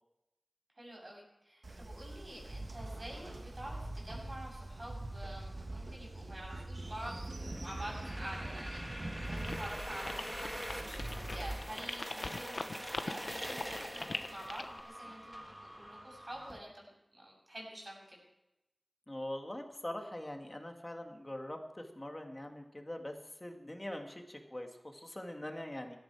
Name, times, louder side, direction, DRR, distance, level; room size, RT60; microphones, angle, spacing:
voice 1, 0.7-18.2, right 1 dB, 45° right, -2 dB, 7.7 m, -48 dB
Train, 1.6-11.6, right 2 dB, 65° right, 1.7 m, -43 dB
sound 1, 6.8-16.6, equal, 10° right, 1.6 m, -45 dB
sound 2, 9.4-14.8, left 3 dB, 80° left, 0.9 m, -41 dB
voice 2, 19.1-26.0, left 1 dB, 25° left, 4 dB, 2.2 m, -43 dB
17.0 x 13.0 x 4.9 m, 0.93 s
wide cardioid pair, 45°, 0 cm